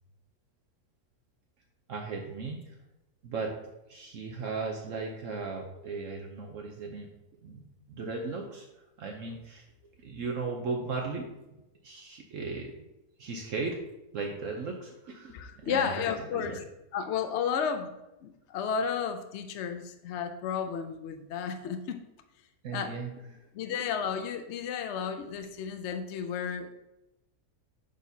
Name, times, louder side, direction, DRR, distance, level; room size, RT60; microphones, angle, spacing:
voice 1, 1.9-2.8 3.2-3.5 3.9-7.1 7.4-8.7 9.0-9.6 10.0-11.3 11.8-12.7 13.2-13.8 14.1-16.0 16.3-16.6 22.6-23.1 25.2-25.3, right 4 dB, 60° right, 2 dB, 1.0 m, -36 dB
voice 2, 15.3-16.6 16.9-17.9 18.2-22.0 22.7-22.9 23.5-26.8, left 7 dB, 65° left, 7 dB, 0.7 m, -32 dB
6.6 x 6.2 x 2.7 m, 0.93 s
omnidirectional pair, 1.7 m